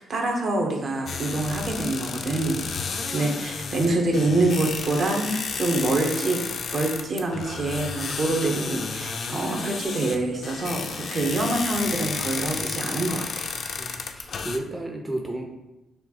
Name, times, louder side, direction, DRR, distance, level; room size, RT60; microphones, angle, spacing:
voice 1, 0.0-2.7 3.1-6.4 6.7-13.5, right 2 dB, 50° right, 2 dB, 0.8 m, -26 dB
sound 1, 1.1-14.6, left 5 dB, 55° left, 0.4 m, -32 dB
voice 2, 2.7-3.3 13.8-15.4, right 1 dB, 15° right, 2 dB, 0.5 m, -34 dB
6.4 x 2.3 x 2.8 m, 0.98 s
cardioid pair, 90°, 0 cm